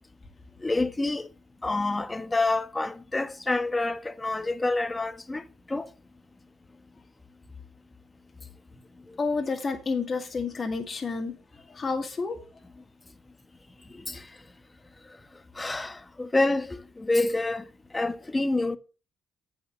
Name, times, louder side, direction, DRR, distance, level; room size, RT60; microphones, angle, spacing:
voice 1, 0.6-1.3 1.6-5.9 14.1-14.3 15.6-17.6 17.9-18.8, left 2 dB, 20° left, 1.2 m, -27 dB
voice 2, 9.2-11.4 11.7-12.4, left 4 dB, 40° left, 2.2 m, -29 dB
9.1 x 5.6 x 6.9 m
supercardioid pair, 65°, 0 cm